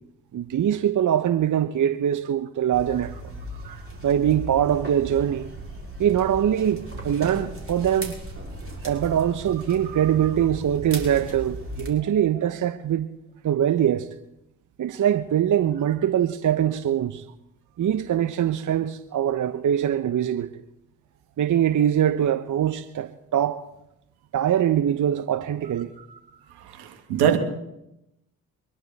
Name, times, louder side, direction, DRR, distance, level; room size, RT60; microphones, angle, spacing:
voice 1, 0.3-3.3 4.0-5.5 6.0-8.2 8.8-13.1 13.4-14.1 14.8-17.2 17.8-20.5 21.4-23.6 24.3-25.9, right 10 dB, 50° right, 0.9 m, -23 dB
sound 1, 2.7-11.9, right 1 dB, 35° right, 5.4 m, -37 dB
voice 2, 26.7-27.4, right 9 dB, 75° right, 2.1 m, -23 dB
24.0 x 11.5 x 4.2 m
hypercardioid pair, 45°, 40 cm